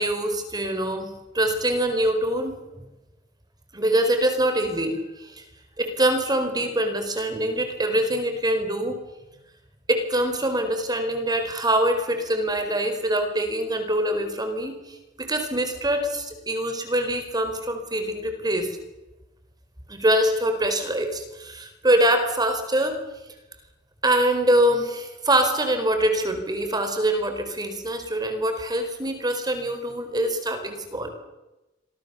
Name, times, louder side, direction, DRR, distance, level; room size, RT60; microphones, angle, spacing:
voice 1, 0.0-2.6 3.7-5.4 5.8-9.0 9.9-18.8 19.9-23.0 24.0-31.1, right 1 dB, 20° right, 7 dB, 4.6 m, -24 dB
27.5 x 23.5 x 7.1 m, 1.0 s
head